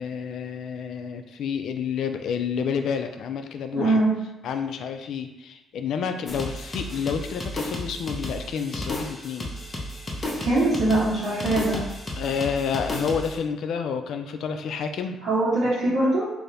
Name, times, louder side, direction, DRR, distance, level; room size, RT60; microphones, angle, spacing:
voice 1, 0.0-4.0 4.4-9.5 12.2-15.2 15.8-15.9, left 6 dB, 75° left, 7 dB, 0.3 m, -29 dB
voice 2, 3.7-4.1 10.4-11.8 15.2-16.3, right 2 dB, 70° right, -12 dB, 1.3 m, -22 dB
sound 1, 6.2-13.4, left 1 dB, 25° left, 0.7 m, -33 dB
2.7 x 2.6 x 3.3 m, 0.96 s
cardioid pair, 90°, 0 cm